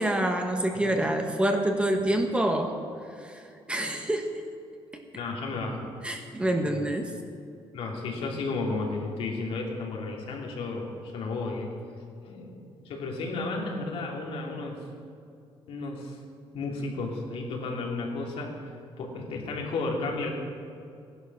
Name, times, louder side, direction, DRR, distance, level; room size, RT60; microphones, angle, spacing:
voice 1, 0.0-2.7 3.2-3.4 3.7-4.3 6.0-7.1, right 1 dB, 10° right, 3 dB, 1.3 m, -26 dB
voice 2, 5.1-5.9 6.6-6.8 7.7-11.7 12.2-14.8 15.7-16.2 16.5-18.6 19.0-20.3, left 3 dB, 80° left, -1 dB, 2.8 m, -33 dB
16.5 x 11.0 x 6.0 m, 2.5 s
cardioid pair, 150°, 10 cm